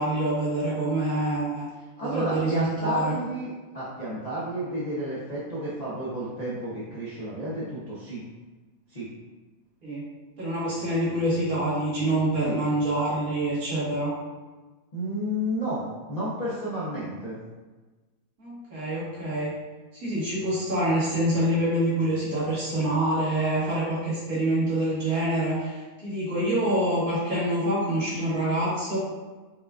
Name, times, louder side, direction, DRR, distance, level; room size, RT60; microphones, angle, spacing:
voice 1, 0.0-1.7 2.0-3.1 9.8-10.0 10.4-14.1 18.4-19.5 19.9-29.0, right 1 dB, 65° right, -9 dB, 1.8 m, -26 dB
voice 2, 2.0-8.2 8.9-9.1 12.4-12.6 14.9-15.8 16.1-17.4, right 1 dB, 45° left, -10 dB, 0.5 m, -31 dB
4.7 x 2.3 x 2.3 m, 1.3 s
omnidirectional pair, 1.6 m